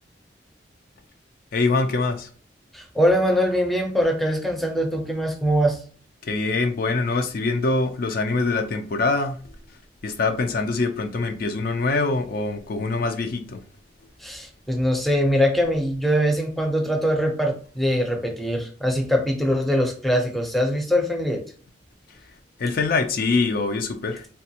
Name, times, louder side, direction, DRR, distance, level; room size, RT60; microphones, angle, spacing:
voice 1, 1.5-2.3 6.2-9.4 10.0-13.6 22.6-24.3, left 3 dB, 55° left, 0.4 m, -24 dB
voice 2, 2.7-5.8 14.2-21.4, equal, ahead, 0.5 m, -22 dB
3.2 x 2.3 x 2.8 m
head